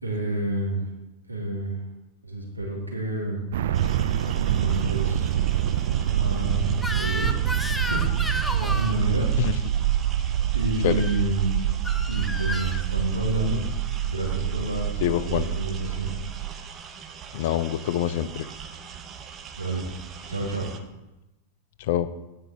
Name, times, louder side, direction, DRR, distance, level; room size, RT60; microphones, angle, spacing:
voice 1, 0.0-0.8 1.3-1.8 2.2-3.4 4.4-5.3 6.1-7.4 7.9-9.3 10.5-11.6 12.1-13.6 14.0-15.0 15.2-16.1 19.6-19.8 20.3-20.7, right 2 dB, 85° right, -3 dB, 2.9 m, -29 dB
sound 1, 3.5-16.5, right 11 dB, 60° right, 0.5 m, -26 dB
sound 2, 3.7-20.8, right 6 dB, 25° right, 1.0 m, -42 dB
Crying sobbing / Screech, 6.8-9.0 10.9-11.2 11.8-12.8, left 1 dB, 5° left, 0.6 m, -32 dB
voice 2, 15.0-15.5 17.3-18.5 21.9-22.1, left 11 dB, 50° left, 15 dB, 0.5 m, -25 dB
16.0 x 5.4 x 4.3 m, 1.0 s
figure-of-eight pair, 90°, 0 cm